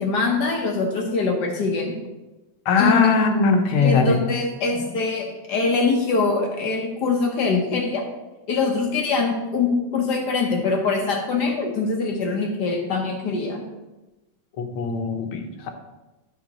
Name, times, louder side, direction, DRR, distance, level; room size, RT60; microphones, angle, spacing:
voice 1, 0.0-1.9 2.8-3.0 3.8-8.0 8.5-13.6, left 4 dB, 60° left, 1 dB, 1.3 m, -23 dB
voice 2, 2.7-4.2 14.6-15.7, left 4 dB, 80° left, 5 dB, 1.7 m, -20 dB
10.0 x 6.0 x 2.9 m, 1.1 s
omnidirectional pair, 2.3 m